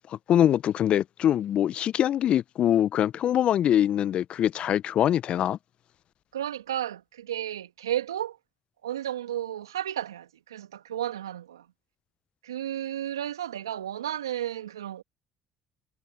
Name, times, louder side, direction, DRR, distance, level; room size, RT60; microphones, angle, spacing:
voice 1, 0.3-5.6, left 10 dB, 55° left, 0.8 m, -23 dB
voice 2, 6.3-8.4 8.8-11.7 12.4-15.0, right 11 dB, 85° right, 2.1 m, -33 dB
hypercardioid pair, 55°, 2 cm